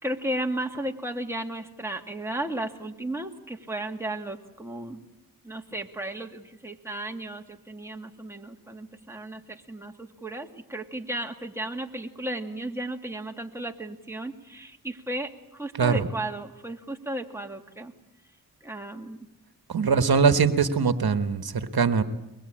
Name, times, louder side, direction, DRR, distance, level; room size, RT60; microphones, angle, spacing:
voice 1, 0.0-5.0 5.4-17.9 18.6-19.2, right 1 dB, 5° right, 2 dB, 2.4 m, -34 dB
voice 2, 19.7-22.0, right 5 dB, 75° right, 10 dB, 1.3 m, -22 dB
23.5 x 21.0 x 8.7 m, 0.94 s
cardioid pair, 55°, 38 cm